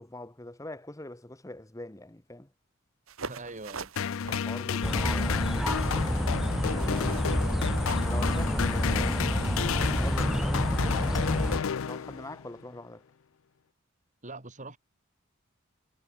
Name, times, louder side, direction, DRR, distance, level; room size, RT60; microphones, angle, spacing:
voice 1, 0.0-2.5 4.3-6.4 6.9-7.3 7.9-11.6 11.8-13.0, left 1 dB, 15° left, 1.2 m, -44 dB
sound 1, 3.1-8.6, right 5 dB, 85° right, 1.7 m, -45 dB
voice 2, 3.2-3.9 7.0-7.3 14.2-14.8, right 2 dB, 35° right, 3.3 m, -43 dB
sound 2, 4.0-12.5, left 7 dB, 75° left, 0.5 m, -31 dB
sound 3, 4.8-11.6, equal, ahead, 0.5 m, -28 dB
head